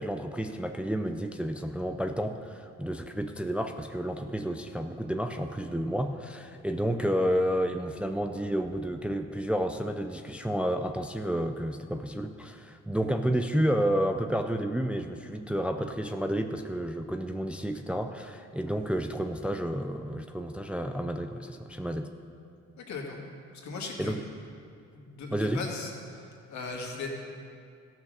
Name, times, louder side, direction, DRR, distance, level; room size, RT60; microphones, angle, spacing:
voice 1, 0.0-22.1 24.0-24.2 25.3-25.6, equal, 5° right, 6 dB, 0.5 m, -30 dB
voice 2, 22.8-23.2 23.6-24.3 24.9-27.2, left 3 dB, 70° left, 0 dB, 2.1 m, -38 dB
14.5 x 6.0 x 6.5 m, 2.4 s
cardioid pair, 90°, 30 cm